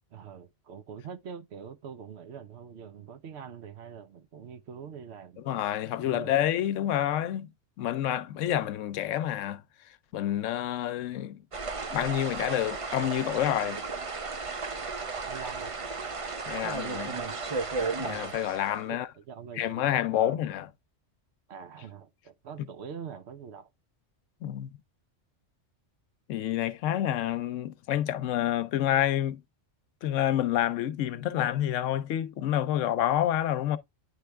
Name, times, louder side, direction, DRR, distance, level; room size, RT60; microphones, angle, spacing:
voice 1, 0.1-5.4 6.0-6.3 15.3-15.7 18.9-20.4 21.5-23.7, right 7 dB, 65° right, 0.9 m, -44 dB
voice 2, 5.5-7.5 7.8-9.6 10.1-11.4 11.9-13.8 16.5-17.2 18.0-19.1 19.6-20.7 24.4-24.7 26.3-29.4 30.0-33.8, left 12 dB, 85° left, 1.0 m, -28 dB
sound 1, 11.5-18.8, right 4 dB, 35° right, 0.7 m, -34 dB
9.5 x 3.3 x 3.3 m
omnidirectional pair, 1.3 m